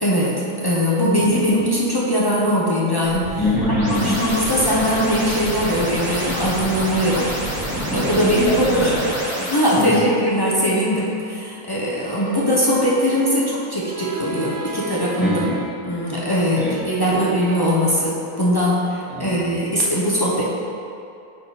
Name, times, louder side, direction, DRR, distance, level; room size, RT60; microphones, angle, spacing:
voice 1, 0.0-3.4 3.9-7.3 7.9-8.9 9.5-15.5 15.8-20.4, equal, 35° left, -6 dB, 0.3 m, -20 dB
sound 1, 3.0-9.8, equal, 30° right, 1.4 m, -28 dB
voice 2, 3.4-4.2 7.7-9.4 9.8-10.0 15.2-15.6 16.6-16.7 17.1-17.2 19.1-19.4, left 1 dB, ahead, -7 dB, 0.9 m, -24 dB
sound 2, 12.0-15.8 16.1-17.7, right 3 dB, 55° right, 0.9 m, -35 dB
8.9 x 3.8 x 4.0 m, 2.6 s
omnidirectional pair, 1.8 m